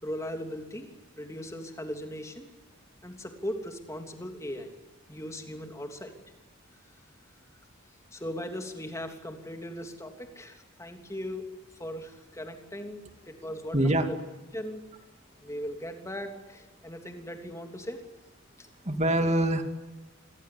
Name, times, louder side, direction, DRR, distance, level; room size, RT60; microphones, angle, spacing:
voice 1, 0.0-0.9 1.1-2.5 3.0-4.7 5.1-6.1 8.1-11.5 11.8-13.0 13.3-14.2 14.5-14.8 15.4-18.0 18.6-18.7, equal, 15° left, 4 dB, 3.1 m, -38 dB
voice 2, 13.7-14.1 18.8-19.6, right 1 dB, 30° right, 6 dB, 2.6 m, -24 dB
27.5 x 23.0 x 8.7 m, 1.2 s
head